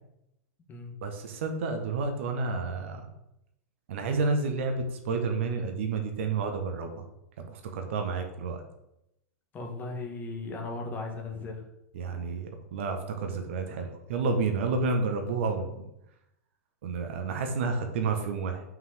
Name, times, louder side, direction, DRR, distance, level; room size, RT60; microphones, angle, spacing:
voice 1, 1.0-3.0 3.9-7.0 7.4-8.6 11.9-15.9 16.8-18.6, right 4 dB, 50° right, 5 dB, 1.4 m, -30 dB
voice 2, 9.5-11.6, left 3 dB, 20° left, 1 dB, 1.7 m, -37 dB
6.0 x 5.6 x 6.7 m, 0.84 s
figure-of-eight pair, 95°, 8 cm